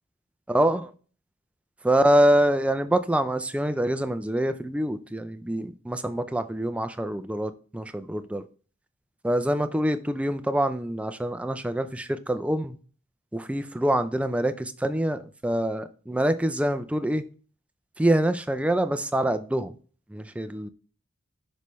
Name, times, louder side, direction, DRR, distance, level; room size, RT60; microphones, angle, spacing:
voice 1, 0.5-0.8 1.8-8.4 9.2-12.8 13.3-17.2 18.0-19.7 20.1-20.7, right 1 dB, 5° right, 0.4 m, -25 dB
6.3 x 5.4 x 3.1 m
head